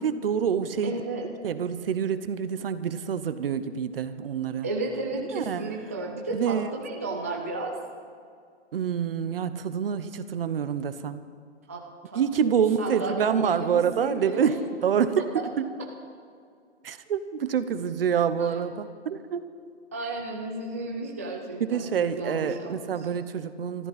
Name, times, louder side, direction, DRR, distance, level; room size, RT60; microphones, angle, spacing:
voice 1, 0.0-0.9 1.4-4.7 5.3-5.7 6.3-6.7 8.7-11.2 12.1-15.2 15.6-15.7 16.8-19.4 21.6-23.9, right 7 dB, 50° right, 12 dB, 0.9 m, -27 dB
voice 2, 0.8-1.3 4.6-7.7 11.7-14.5 15.3-15.5 18.4-18.6 19.9-23.0, right 2 dB, 15° right, -1 dB, 0.4 m, -33 dB
22.0 x 14.0 x 4.2 m, 2.2 s
hypercardioid pair, 165°, 35 cm